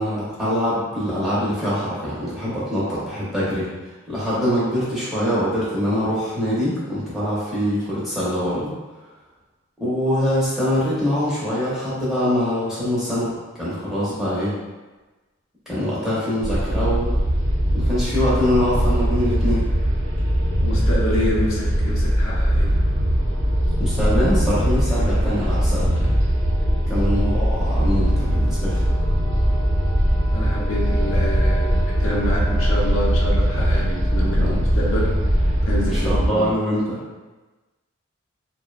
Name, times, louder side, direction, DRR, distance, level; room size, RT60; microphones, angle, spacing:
voice 1, 0.0-3.7 4.1-8.7 9.8-14.5 15.7-17.2 17.7-19.6 23.8-25.9 26.9-28.8 34.4-34.5 35.9-37.0, equal, ahead, -10 dB, 0.6 m, -23 dB
sound 1, 16.4-36.3, equal, 65° right, 0.6 m, -20 dB
voice 2, 20.6-22.7 26.9-27.1 30.3-35.1 35.6-36.5, left 1 dB, 65° left, -4 dB, 0.5 m, -27 dB
2.6 x 2.0 x 2.3 m, 1.2 s
head